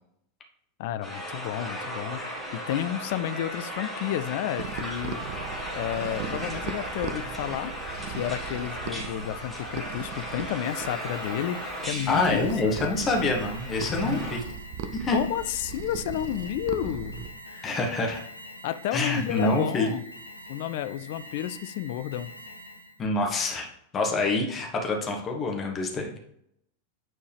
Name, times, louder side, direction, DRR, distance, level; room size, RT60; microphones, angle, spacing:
voice 1, 0.8-5.2 5.7-7.7 8.1-12.9 14.0-14.3 15.1-17.8 18.6-20.0 20.5-22.3, left 12 dB, 50° left, 12 dB, 0.4 m, -31 dB
sound 1, 1.0-14.4, equal, 5° right, 1.7 m, -36 dB
sound 2, 4.6-17.3, right 8 dB, 50° right, 0.6 m, -39 dB
Alarm, 10.6-23.0, equal, 85° left, 0.7 m, -45 dB
voice 2, 12.1-14.4 14.9-15.2 17.6-18.2 18.9-19.9 23.0-23.7 23.9-26.2, left 2 dB, 25° left, 2 dB, 1.4 m, -26 dB
9.0 x 4.5 x 3.4 m, 0.74 s
figure-of-eight pair, 90°, 0 cm